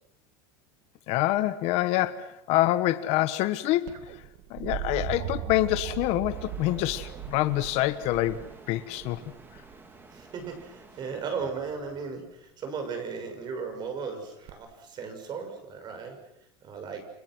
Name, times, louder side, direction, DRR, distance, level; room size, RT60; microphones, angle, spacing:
voice 1, 1.1-4.2 4.5-9.2, left 15 dB, 50° left, 13 dB, 1.3 m, -26 dB
sound 1, 3.9-9.8 11.4-11.9 14.5-14.6, right 11 dB, 55° right, 2.1 m, -38 dB
sound 2, 6.3-11.4, right 3 dB, 15° right, 3.6 m, -50 dB
voice 2, 10.1-16.2 16.6-17.0, right 5 dB, 35° right, 7 dB, 6.5 m, -36 dB
29.5 x 25.5 x 6.3 m, 0.78 s
supercardioid pair, 145°, 13 cm